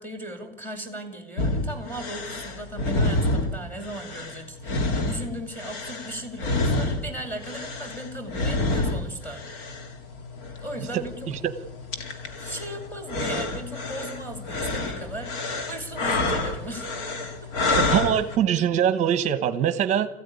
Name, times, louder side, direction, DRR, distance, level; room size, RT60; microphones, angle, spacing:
voice 1, 0.0-9.7 10.6-11.3 12.4-15.4 15.7-16.9 17.4-17.5, right 1 dB, 5° left, 5 dB, 2.5 m, -37 dB
sound 1, 1.4-18.4, left 2 dB, 55° left, 2.5 m, -29 dB
voice 2, 17.6-20.1, right 9 dB, 25° right, 11 dB, 1.1 m, -23 dB
27.0 x 15.5 x 9.7 m, 1.0 s
supercardioid pair, 175°, 30 cm